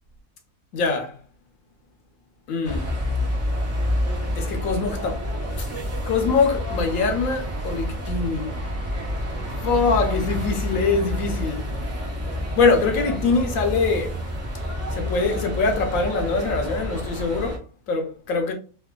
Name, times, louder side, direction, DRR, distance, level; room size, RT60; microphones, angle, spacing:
voice 1, 0.7-1.1 2.5-2.8 4.4-5.7 6.1-8.5 9.6-11.7 12.6-14.1 14.9-17.6 17.9-18.5, left 4 dB, 70° left, 1.0 m, -23 dB
sound 1, 2.6-17.6, left 1 dB, 20° right, 0.4 m, -28 dB
3.2 x 2.5 x 2.2 m
omnidirectional pair, 1.6 m